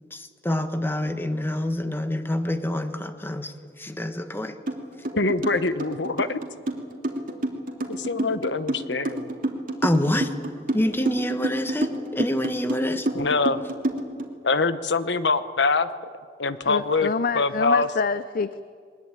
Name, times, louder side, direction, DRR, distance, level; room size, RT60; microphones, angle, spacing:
voice 1, 0.1-4.6 9.8-10.3 10.7-13.1, left 1 dB, 15° left, 8 dB, 1.3 m, -27 dB
sound 1, 4.7-4.8 5.0-14.3, right 1 dB, 50° right, 2.7 m, -28 dB
voice 2, 5.1-6.4 7.9-9.3 13.1-13.6 14.4-15.9 16.4-17.9, left 3 dB, 90° left, 12 dB, 1.1 m, -24 dB
voice 3, 16.6-18.6, left 5 dB, 55° left, 14 dB, 0.5 m, -27 dB
22.5 x 20.5 x 9.1 m, 2.1 s
head